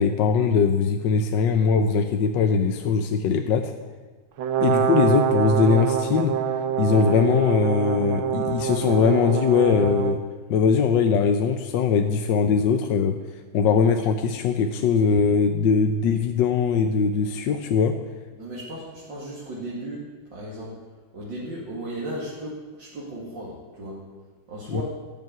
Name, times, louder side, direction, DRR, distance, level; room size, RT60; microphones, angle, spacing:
voice 1, 0.0-3.7 4.6-6.4 6.8-10.2 10.5-13.2 13.5-18.0 24.7-24.8, left 5 dB, 65° left, 6 dB, 1.4 m, -21 dB
Brass instrument, 4.4-10.2, right 9 dB, 80° right, 1.7 m, -25 dB
voice 2, 18.4-20.8 21.1-24.1 24.5-24.8, right 1 dB, 60° right, -5 dB, 3.0 m, -36 dB
14.0 x 7.9 x 9.6 m, 1.4 s
omnidirectional pair, 2.2 m